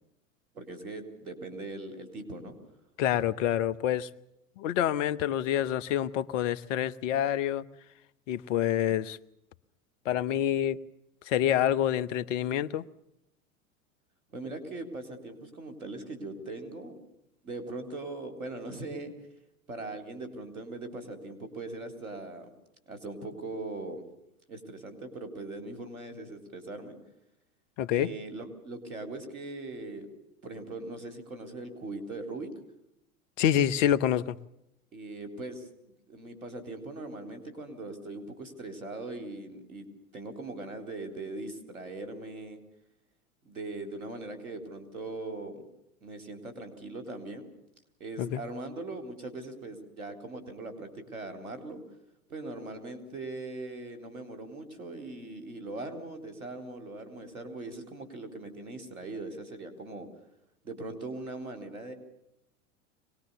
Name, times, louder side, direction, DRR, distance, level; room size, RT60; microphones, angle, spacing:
voice 1, 0.5-2.5 14.3-17.0 17.4-19.1 19.7-22.5 22.9-24.0 24.5-27.0 27.9-30.1 30.4-32.5 34.9-39.9 40.1-42.6 43.4-45.7 46.0-47.5 48.0-51.8 52.3-60.1 60.6-61.9, right 2 dB, 85° right, 4.2 m, -40 dB
voice 2, 3.0-4.1 4.6-7.6 8.3-9.2 10.0-10.8 11.3-12.8 27.8-28.1 33.4-34.4 48.2-48.4, left 11 dB, 60° left, 1.1 m, -27 dB
24.5 x 19.5 x 7.0 m
hypercardioid pair, 90°, 42 cm